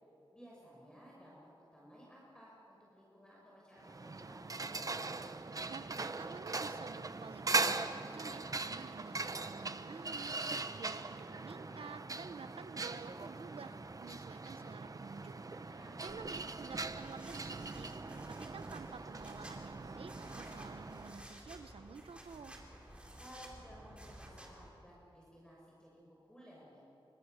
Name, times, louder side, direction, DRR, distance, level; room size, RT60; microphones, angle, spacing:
voice 1, 0.3-1.4 1.7-4.5 15.6-16.3 23.2-26.0 26.3-26.8, equal, 10° left, -5 dB, 6.1 m, -57 dB
sound 1, 3.8-21.3, right 3 dB, 35° right, 1.0 m, -40 dB
voice 2, 5.7-10.3 10.7-15.8 16.0-17.9 18.3-22.6, right 5 dB, 80° right, 10 dB, 1.2 m, -51 dB
sound 2, 16.1-24.7, right 1 dB, 10° right, 4.3 m, -54 dB
30.0 x 25.5 x 6.8 m, 2.9 s
wide cardioid pair, 110°, 10 cm